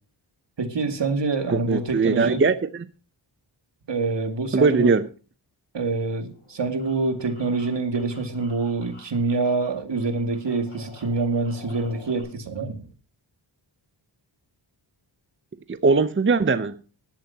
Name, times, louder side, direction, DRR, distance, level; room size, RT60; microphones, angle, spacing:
voice 1, 0.6-2.4 3.9-4.9 5.7-12.8, right 3 dB, 65° right, 2.2 m, -26 dB
voice 2, 1.5-2.9 4.5-5.1 15.7-16.8, right 4 dB, 25° right, 0.6 m, -20 dB
sound 1, 6.3-9.7 9.9-12.2, left 2 dB, 85° left, 6.7 m, -48 dB
17.5 x 12.0 x 2.8 m
wide cardioid pair, 80°, 47 cm